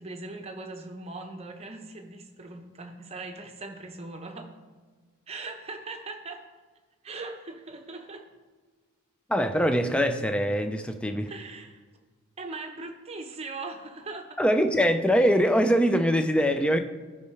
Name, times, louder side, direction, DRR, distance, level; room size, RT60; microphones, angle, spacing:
voice 1, 0.0-4.5 5.3-6.5 7.0-8.3 11.3-11.8 12.4-14.4, right 3 dB, 25° right, 4 dB, 0.8 m, -40 dB
voice 2, 9.3-11.3 14.4-16.8, equal, 5° left, 7 dB, 0.4 m, -23 dB
13.0 x 5.4 x 3.2 m, 1.4 s
head